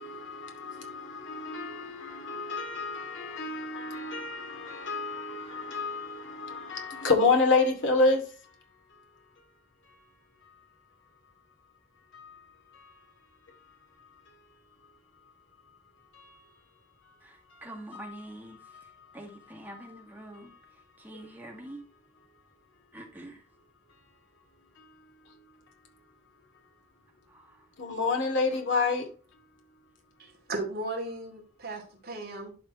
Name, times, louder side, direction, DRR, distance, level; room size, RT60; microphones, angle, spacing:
voice 1, 0.0-8.2 17.9-18.1 27.8-29.1, left 3 dB, 85° left, 2.5 m, -28 dB
voice 2, 17.2-21.8 22.9-23.5 27.3-27.7, right 1 dB, 10° right, 1.9 m, -46 dB
voice 3, 30.2-32.5, right 2 dB, 50° right, 3.0 m, -36 dB
11.5 x 4.7 x 3.0 m
head